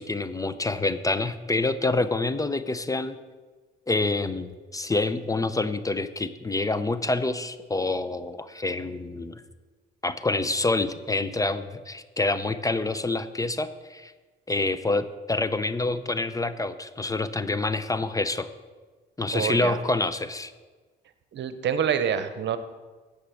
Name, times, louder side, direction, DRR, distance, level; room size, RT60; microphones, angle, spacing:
voice 1, 0.0-3.2 3.9-9.4 10.0-14.1 14.5-18.5 19.2-20.5, left 2 dB, 15° left, 12 dB, 0.6 m, -27 dB
voice 2, 19.3-19.8 21.3-22.6, right 8 dB, 65° right, 11 dB, 0.9 m, -26 dB
10.0 x 8.1 x 6.4 m, 1.3 s
cardioid pair, 90°, 20 cm